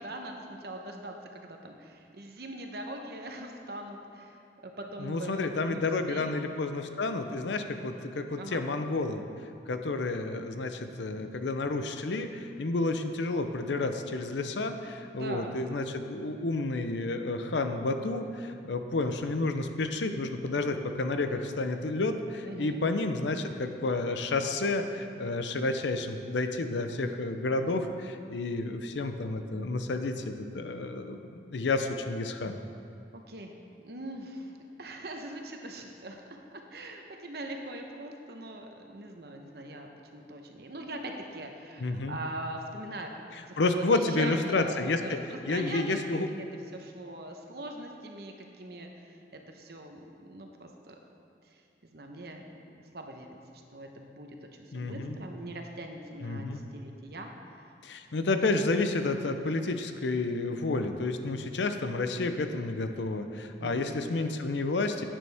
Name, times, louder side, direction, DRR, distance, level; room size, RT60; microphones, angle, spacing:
voice 1, 0.0-6.3 8.3-8.7 15.1-15.5 22.4-22.8 33.1-33.5 33.8-34.5 34.8-36.2 36.5-43.1 43.5-46.0 46.3-46.5 46.7-51.0 51.5-52.4 52.9-53.3 53.7-57.3 63.6-64.1, right 1 dB, 60° right, 3 dB, 0.9 m, -42 dB
voice 2, 5.0-9.2 9.7-32.6 41.8-42.2 43.4-45.2 45.4-46.3 54.7-55.2 56.2-56.6 57.8-65.0, left 3 dB, 85° left, 7 dB, 0.6 m, -30 dB
11.0 x 9.1 x 3.5 m, 2.4 s
head